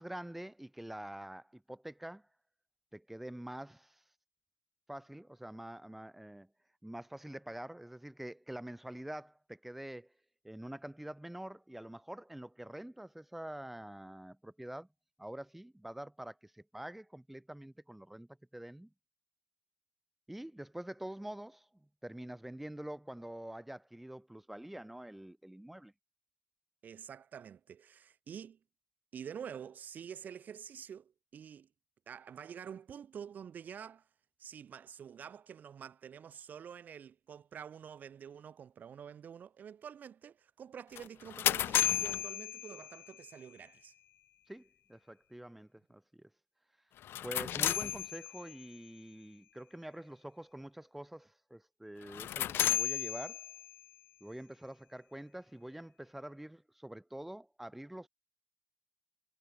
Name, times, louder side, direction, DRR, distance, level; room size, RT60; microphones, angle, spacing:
voice 1, 0.0-2.3 2.9-4.0 4.9-6.5 6.8-10.1 10.4-14.9 15.2-18.9 20.3-25.9 44.5-46.3 47.2-53.5 54.2-58.1, right 1 dB, 5° right, 3.8 m, -46 dB
voice 2, 26.8-28.6 29.1-31.7 32.1-34.1 34.4-43.9, right 8 dB, 50° right, 2.2 m, -48 dB
sound 1, 41.0-43.2 47.0-48.7 52.0-53.8, left 12 dB, 85° left, 0.4 m, -33 dB
wide cardioid pair, 175°, 4 cm